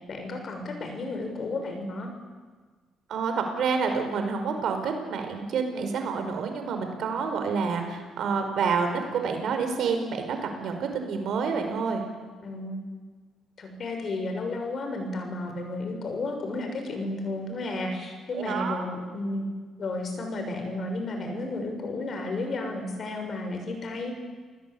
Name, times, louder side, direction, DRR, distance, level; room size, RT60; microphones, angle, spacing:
voice 1, 0.1-2.1 12.4-12.9 13.6-19.5 19.8-24.1, left 2 dB, 50° left, 4 dB, 6.9 m, -32 dB
voice 2, 3.1-12.1 18.3-18.8, right 5 dB, 70° right, 5 dB, 5.0 m, -28 dB
29.0 x 19.5 x 8.7 m, 1.4 s
cardioid pair, 90°, 0 cm